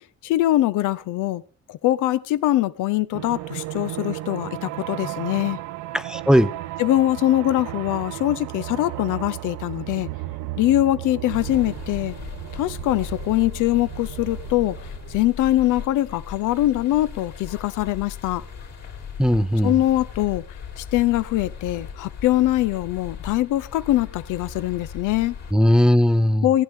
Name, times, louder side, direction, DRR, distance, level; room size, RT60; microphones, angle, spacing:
voice 1, 0.2-1.4 1.7-5.6 6.8-10.1 10.6-12.1 12.5-14.8 15.1-18.4 19.6-20.4 20.8-25.3 26.4-26.6, left 14 dB, 85° left, 15 dB, 0.6 m, -22 dB
sound 1, 3.1-15.3, right 16 dB, 90° right, 0.5 m, -34 dB
voice 2, 5.9-6.5 19.2-19.8 25.5-26.5, equal, ahead, 13 dB, 0.5 m, -18 dB
sound 2, 11.3-25.5, left 6 dB, 60° left, 2.7 m, -38 dB
15.5 x 8.9 x 3.6 m, 0.39 s
cardioid pair, 90°, 30 cm